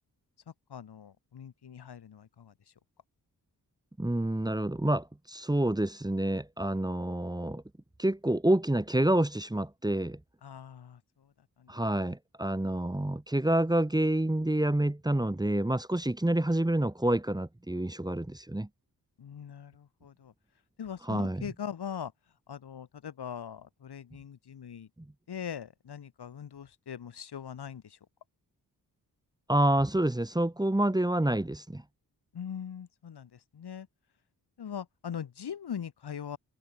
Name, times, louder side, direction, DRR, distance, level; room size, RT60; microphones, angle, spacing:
voice 1, 0.7-2.5 10.4-11.3 11.6-11.7 19.2-20.3 20.8-22.1 22.5-24.9 25.3-28.0 32.3-33.9 34.6-36.4, left 8 dB, 90° left, 4.9 m, -41 dB
voice 2, 4.0-7.6 8.0-10.2 11.7-18.7 21.1-21.4 25.0-25.1 29.5-31.8, right 1 dB, 10° right, 1.4 m, -28 dB
cardioid pair, 75°, 38 cm